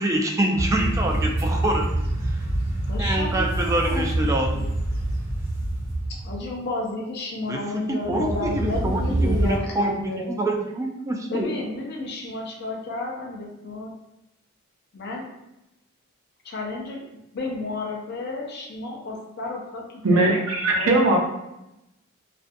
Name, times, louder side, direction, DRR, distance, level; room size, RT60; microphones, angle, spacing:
voice 1, 0.0-1.9 3.0-4.5 7.5-7.6 7.9-11.5, right 1 dB, 15° right, 0 dB, 0.3 m, -25 dB
sound 1, 0.6-6.5 8.0-9.6, right 1 dB, 60° right, 1.0 m, -26 dB
voice 2, 2.9-4.3 4.5-4.7 6.2-10.3 11.3-13.9 14.9-15.3 16.4-17.0 17.3-20.4 20.7-21.1, left 2 dB, 55° left, -1 dB, 0.5 m, -32 dB
voice 3, 20.0-21.2, right 2 dB, 85° right, 0 dB, 0.6 m, -19 dB
2.5 x 2.3 x 2.5 m, 0.90 s
head